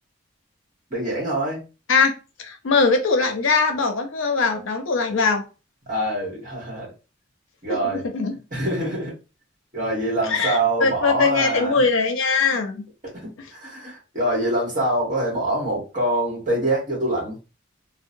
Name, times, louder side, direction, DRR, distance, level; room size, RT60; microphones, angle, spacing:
voice 1, 0.9-1.6 5.9-6.9 7.6-8.0 8.5-9.2 9.7-11.8 13.0-17.4, right 1 dB, 40° right, 1.3 m, -25 dB
voice 2, 2.4-5.4 7.9-8.3 10.3-12.8, left 4 dB, 75° left, 0.6 m, -21 dB
2.8 x 2.0 x 2.6 m
head